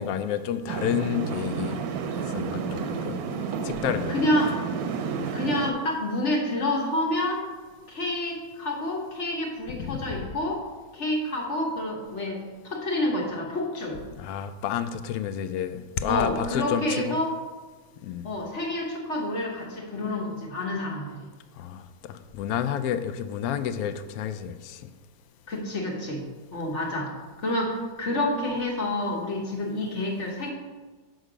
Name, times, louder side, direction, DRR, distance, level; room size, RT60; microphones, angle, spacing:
voice 1, 0.0-1.8 2.3-3.2 3.6-4.2 9.8-10.2 14.2-17.2 18.0-18.3 21.6-24.8, left 9 dB, 70° left, 11 dB, 0.9 m, -30 dB
sound 1, 0.7-5.7, right 6 dB, 70° right, 1.1 m, -31 dB
voice 2, 4.1-4.6 5.3-7.4 7.9-10.6 10.9-14.0 16.1-17.4 18.2-21.2 25.5-26.2 26.5-27.1 27.4-30.5, left 1 dB, 45° left, -1 dB, 1.3 m, -28 dB
6.4 x 6.3 x 5.0 m, 1.4 s
omnidirectional pair, 1.8 m